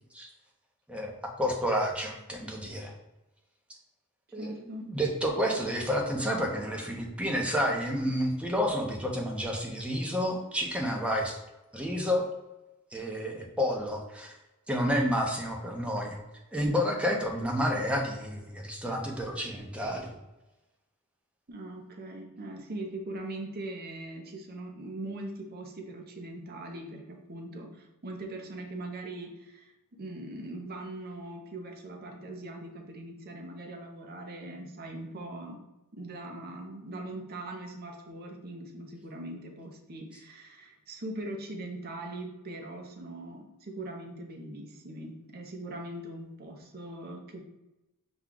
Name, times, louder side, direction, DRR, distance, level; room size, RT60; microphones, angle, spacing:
voice 1, 0.9-2.9 4.3-11.4 11.7-12.2 12.9-14.3 14.7-16.2 16.5-20.1, equal, 5° right, 0 dB, 0.7 m, -30 dB
voice 2, 4.4-4.9 21.5-29.7 30.0-35.6 35.9-47.4, right 1 dB, 45° right, 2 dB, 0.7 m, -41 dB
5.9 x 2.3 x 3.8 m, 0.98 s
head